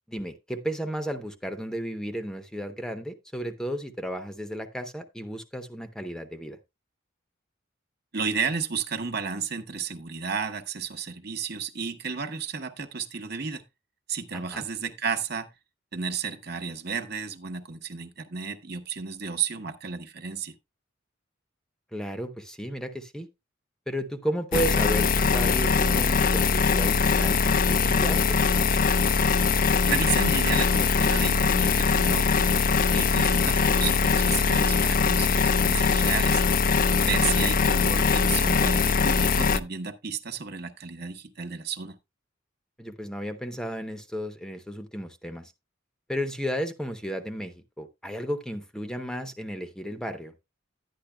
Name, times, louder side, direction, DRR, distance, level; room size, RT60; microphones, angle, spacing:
voice 1, 0.1-6.6 14.3-14.6 21.9-23.3 23.9-28.4 37.2-37.3 42.8-45.5 46.1-50.3, equal, 5° left, 0.8 m, -33 dB
voice 2, 8.1-13.6 14.1-15.5 15.9-20.6 29.8-32.5 32.9-36.4 37.0-42.0, right 6 dB, 55° right, 1.1 m, -32 dB
sound 1, 24.5-39.6, left 5 dB, 45° left, 0.5 m, -22 dB
11.0 x 10.0 x 2.2 m
head